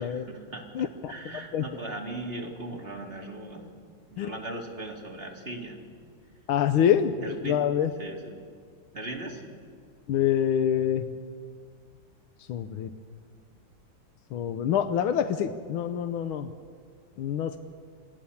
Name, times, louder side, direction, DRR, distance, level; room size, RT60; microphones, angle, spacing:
voice 1, 0.0-3.7 4.1-5.8 7.2-7.6 8.0-8.4 8.9-9.4, right 2 dB, 30° right, 0 dB, 2.7 m, -38 dB
voice 2, 0.7-1.1 1.5-1.6 4.2-4.3 6.5-7.9 10.1-11.1 12.5-12.9 14.3-16.5 17.2-17.6, left 9 dB, 90° left, 8 dB, 1.6 m, -26 dB
26.5 x 18.0 x 7.1 m, 2.1 s
omnidirectional pair, 2.2 m